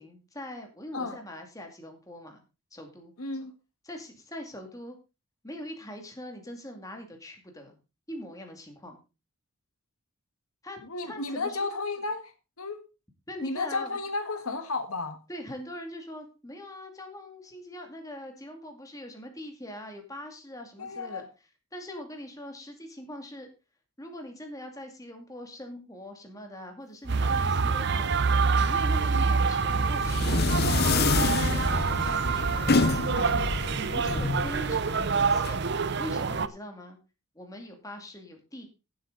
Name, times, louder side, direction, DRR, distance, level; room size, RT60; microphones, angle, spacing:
voice 1, 0.0-2.4 2.7-3.1 3.8-5.0 5.4-7.8 8.1-9.0 10.6-10.8 11.0-11.7 13.3-14.0 15.3-21.2 21.7-23.5 24.0-28.1 28.6-37.0 37.3-38.7, equal, 15° left, 3 dB, 2.3 m, -42 dB
voice 2, 3.2-3.5 10.9-12.8 13.4-15.2 20.8-21.2 29.1-29.4, left 3 dB, 85° left, 8 dB, 1.7 m, -33 dB
sound 1, 27.1-36.5, right 5 dB, 50° right, 0.6 m, -26 dB
sound 2, 29.7-35.5, left 3 dB, 45° left, 0.8 m, -27 dB
15.5 x 7.8 x 3.9 m, 0.30 s
head